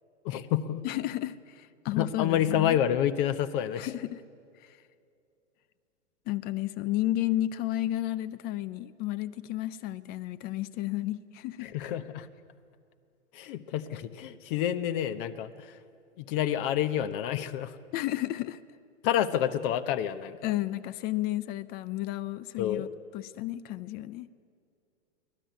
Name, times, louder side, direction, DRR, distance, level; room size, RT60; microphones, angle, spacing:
voice 1, 0.2-0.8 2.0-3.9 11.6-12.3 13.3-15.7 16.2-17.8 19.0-20.4 22.6-22.9, left 10 dB, 45° left, 11 dB, 1.1 m, -28 dB
voice 2, 0.8-2.8 3.8-4.2 4.6-4.8 6.3-11.7 17.9-18.6 20.4-22.9 23.1-24.3, left 15 dB, 25° left, 17 dB, 0.5 m, -32 dB
23.5 x 17.0 x 9.3 m, 2.4 s
hypercardioid pair, 125°, 37 cm